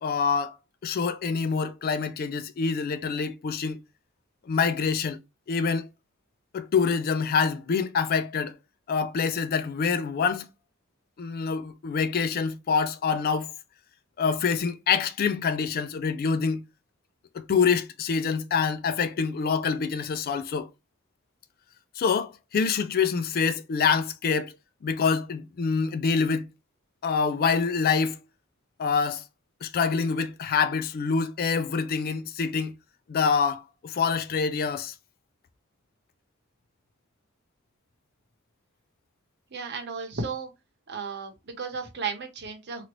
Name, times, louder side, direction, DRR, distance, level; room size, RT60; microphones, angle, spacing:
voice 1, 0.0-0.5 0.8-3.8 4.5-5.2 5.5-5.9 6.5-8.6 8.9-10.5 11.2-13.5 14.2-16.6 17.3-20.7 22.0-24.5 24.8-26.5 27.0-28.2 28.8-29.2 29.6-32.7 33.1-34.9, left 5 dB, 45° left, 0.3 m, -26 dB
voice 2, 39.5-40.5 40.9-42.8, right 5 dB, 55° right, 0.9 m, -34 dB
3.0 x 2.5 x 3.0 m
head